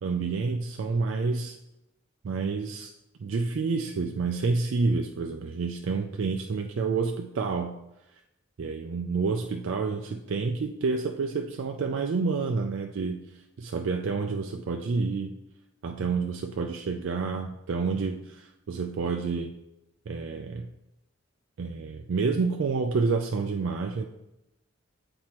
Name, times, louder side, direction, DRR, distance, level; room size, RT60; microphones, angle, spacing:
voice 1, 0.0-1.6 2.2-2.9 3.2-7.8 8.6-13.2 13.6-15.3 15.8-19.6 20.1-20.7 21.6-24.1, right 4 dB, 65° right, 3 dB, 0.4 m, -29 dB
7.6 x 4.4 x 2.9 m, 0.90 s
head